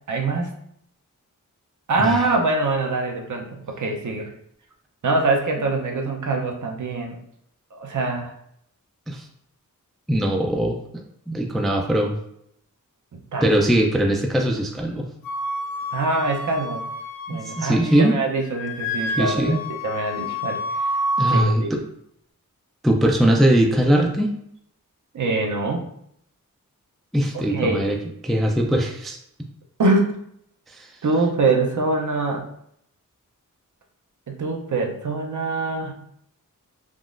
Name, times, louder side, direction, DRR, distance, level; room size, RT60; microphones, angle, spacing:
voice 1, 0.1-0.5 1.9-4.3 5.0-7.2 7.7-8.3 13.1-13.6 15.9-16.8 17.3-20.9 21.3-21.8 25.1-25.9 27.3-27.8 29.8-30.2 31.0-32.5 34.3-35.9, right 3 dB, 60° right, 2 dB, 0.6 m, -24 dB
voice 2, 10.1-12.2 13.4-15.1 17.3-18.2 19.2-19.6 21.2-21.8 22.8-24.3 27.1-28.0 28.2-29.2 30.7-30.9, right 1 dB, ahead, 2 dB, 0.3 m, -21 dB
Wind instrument woodwind instrument, 15.2-18.2 18.4-21.5, equal, 85° left, 0.5 m, -28 dB
3.6 x 2.3 x 2.4 m, 0.72 s
wide cardioid pair, 85°, 34 cm